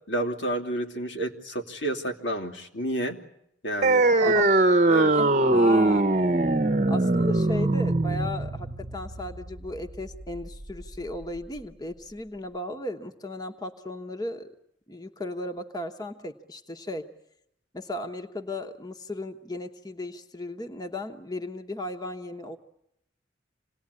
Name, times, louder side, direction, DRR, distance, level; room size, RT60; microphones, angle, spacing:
voice 1, 0.1-3.2 3.6-4.3 4.9-5.1, right 1 dB, 90° left, 0 dB, 3.0 m, -30 dB
sound 1, 3.8-10.8, right 2 dB, 40° right, 0.9 m, -22 dB
voice 2, 4.2-4.5 5.0-6.1 6.9-14.5 14.9-17.1 17.7-22.6, left 1 dB, 20° left, 5 dB, 1.1 m, -36 dB
27.5 x 19.0 x 9.8 m, 0.78 s
head